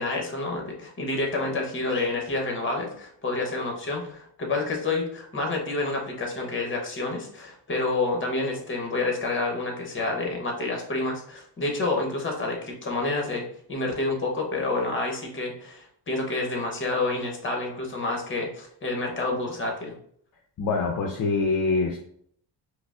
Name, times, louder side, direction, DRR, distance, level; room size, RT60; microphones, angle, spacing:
voice 1, 0.0-13.4 13.7-19.9, left 2 dB, 30° left, 1 dB, 0.8 m, -28 dB
voice 2, 20.6-22.0, left 4 dB, 50° left, 2 dB, 0.5 m, -24 dB
4.6 x 2.0 x 2.4 m, 0.66 s
cardioid pair, 105°, 43 cm